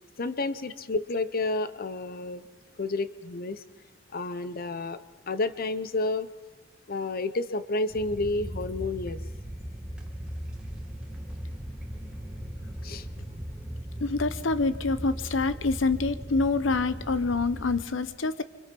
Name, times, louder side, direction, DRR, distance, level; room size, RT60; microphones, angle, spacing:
voice 1, 0.2-2.5 2.8-3.6 4.1-5.0 5.3-6.3 6.9-9.2 12.8-13.1, left 2 dB, 50° left, 12 dB, 0.8 m, -30 dB
sound 1, 7.9-17.8, equal, 5° right, 2.7 m, -38 dB
voice 2, 14.0-18.4, left 3 dB, 80° left, 13 dB, 0.9 m, -26 dB
29.5 x 25.5 x 5.4 m, 1.2 s
head